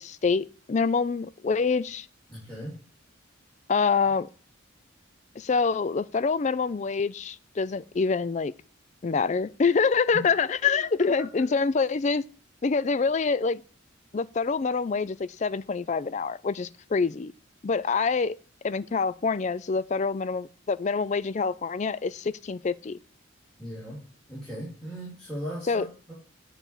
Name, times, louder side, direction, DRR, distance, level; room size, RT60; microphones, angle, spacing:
voice 1, 0.0-2.1 3.7-4.3 5.4-8.5 9.0-12.2 12.6-13.6 14.1-17.3 17.6-18.4 18.6-23.0 25.7-25.9, left 5 dB, 35° left, 0.4 m, -26 dB
voice 2, 2.3-2.8 10.1-10.2 11.0-11.1 11.4-11.5 23.6-24.0 24.3-26.1, equal, 5° left, 2.8 m, -38 dB
8.9 x 4.2 x 7.2 m
head